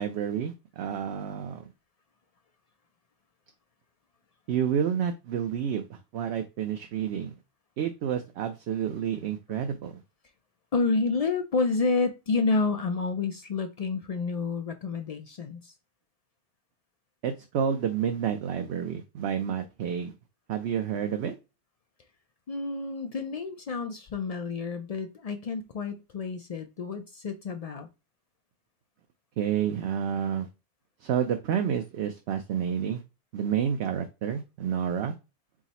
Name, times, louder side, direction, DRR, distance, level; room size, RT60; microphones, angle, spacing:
voice 1, 0.0-1.6 4.5-7.3 7.8-10.0 17.2-20.1 20.5-21.3 29.4-30.5 31.0-33.0 33.3-35.1, right 8 dB, 70° right, 0.8 m, -29 dB
voice 2, 10.7-15.7 22.5-27.9, left 4 dB, 65° left, 0.3 m, -29 dB
4.8 x 2.0 x 4.1 m
omnidirectional pair, 1.2 m